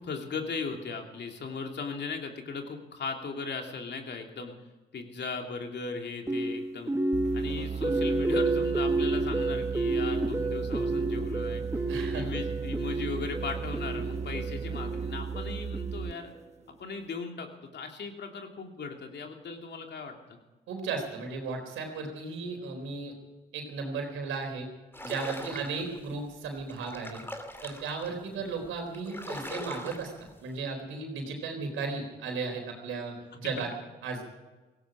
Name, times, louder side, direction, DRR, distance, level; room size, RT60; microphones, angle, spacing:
voice 1, 0.0-4.5 4.9-6.9 7.3-11.6 12.1-16.3 16.8-20.4 25.4-25.8 28.4-28.5, left 4 dB, 60° left, 3 dB, 3.0 m, -38 dB
sound 1, 6.3-16.4, right 2 dB, 15° right, 1.4 m, -30 dB
sound 2, 7.1-16.2, right 7 dB, 35° right, 0.5 m, -36 dB
voice 2, 11.9-12.3 20.7-23.1 23.5-24.7 25.0-27.2 27.6-30.1 30.4-33.7 34.0-34.2, right 4 dB, 85° right, 3 dB, 4.1 m, -35 dB
sound 3, 24.9-26.0 26.6-28.1 28.6-28.7 28.9-30.3, left 1 dB, 10° left, 2.6 m, -41 dB
17.5 x 15.5 x 5.0 m, 1.2 s
supercardioid pair, 55°, 20 cm